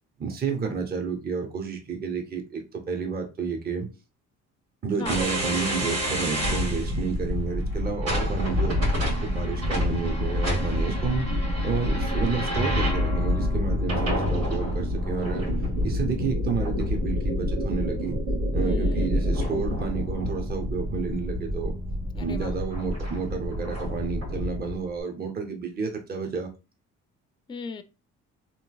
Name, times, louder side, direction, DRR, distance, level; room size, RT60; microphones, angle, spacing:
voice 1, 0.2-3.9 4.8-8.8 9.2-11.3 11.6-15.5 15.8-18.2 18.5-21.8 22.2-26.5, right 5 dB, 30° right, 0.7 m, -30 dB
sound 1, 5.0-24.8, left 1 dB, 85° right, 1.8 m, -27 dB
voice 2, 18.6-19.1 22.1-22.5 27.5-27.8, left 5 dB, 15° left, 0.3 m, -37 dB
3.1 x 3.0 x 2.3 m
cardioid pair, 90°, 30 cm